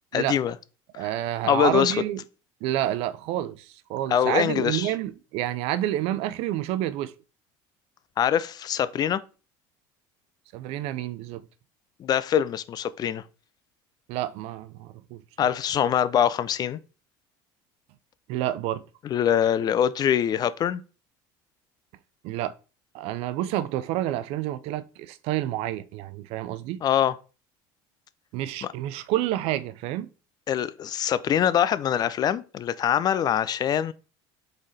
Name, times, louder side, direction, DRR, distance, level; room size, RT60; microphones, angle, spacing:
voice 1, 0.1-0.5 0.9-1.1 1.4-1.9 4.1-4.9 8.2-9.2 12.0-13.2 15.4-16.8 19.0-20.8 26.8-27.1 28.6-28.7 30.5-33.9, left 9 dB, 40° left, 0.3 m, -24 dB
voice 2, 1.0-2.2 2.6-7.1 10.5-11.4 14.1-15.2 18.3-18.8 22.2-22.5 22.9-26.8 28.3-30.1, right 13 dB, 70° right, 0.4 m, -29 dB
3.9 x 3.1 x 4.0 m
supercardioid pair, 105°, 11 cm